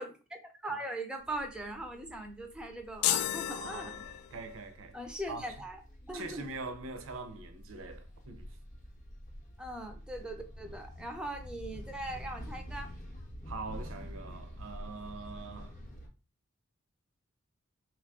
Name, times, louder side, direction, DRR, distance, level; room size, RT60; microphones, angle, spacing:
voice 1, 0.0-3.9 4.9-5.8 6.1-6.5 9.6-12.9, right 1 dB, 5° right, 0.4 m, -40 dB
sound 1, 1.2-16.1, equal, 35° left, 0.6 m, -48 dB
sound 2, 3.0-4.6, left 12 dB, 80° left, 0.3 m, -32 dB
voice 2, 3.5-5.0 5.3-5.4 6.1-8.5 13.5-15.8, right 3 dB, 65° right, 0.5 m, -43 dB
3.0 x 2.3 x 3.5 m
head